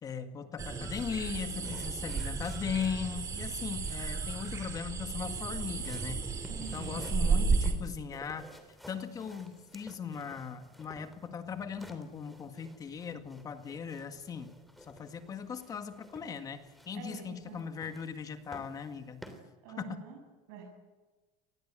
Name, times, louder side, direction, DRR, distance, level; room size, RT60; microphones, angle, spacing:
voice 1, 0.0-6.2 6.6-8.5 8.9-14.5 14.9-19.2 19.8-20.0, left 6 dB, 25° left, 8 dB, 1.8 m, -39 dB
sound 1, 0.6-7.7, right 5 dB, 25° right, 3.0 m, -33 dB
sound 2, 1.0-19.4, equal, ahead, 3.0 m, -55 dB
voice 2, 6.5-7.1 16.9-17.6 19.6-20.2 20.5-20.6, right 7 dB, 75° right, 2 dB, 6.6 m, -46 dB
26.0 x 20.0 x 9.0 m, 1.3 s
cardioid pair, 160°, 14 cm